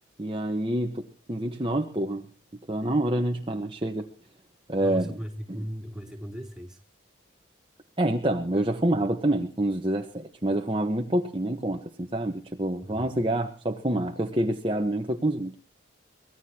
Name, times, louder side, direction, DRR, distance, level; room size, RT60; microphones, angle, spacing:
voice 1, 0.2-2.3 2.7-4.1 4.7-5.2 5.5-5.7 8.0-15.5, right 1 dB, 25° right, 3 dB, 1.2 m, -27 dB
voice 2, 4.8-6.8 12.8-13.1, equal, 5° right, 0 dB, 3.4 m, -37 dB
24.0 x 19.0 x 2.9 m, 0.37 s
head